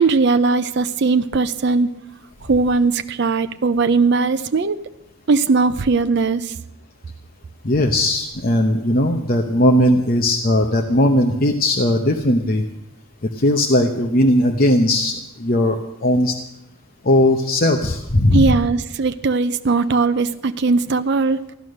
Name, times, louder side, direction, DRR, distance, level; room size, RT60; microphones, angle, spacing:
voice 1, 0.0-1.9 2.4-4.8 5.3-6.5 18.3-21.5, right 4 dB, 50° right, 9 dB, 0.5 m, -19 dB
voice 2, 7.6-12.6 13.3-16.3 17.0-18.5, left 1 dB, 45° left, 3 dB, 0.8 m, -18 dB
14.5 x 11.0 x 6.5 m, 0.87 s
head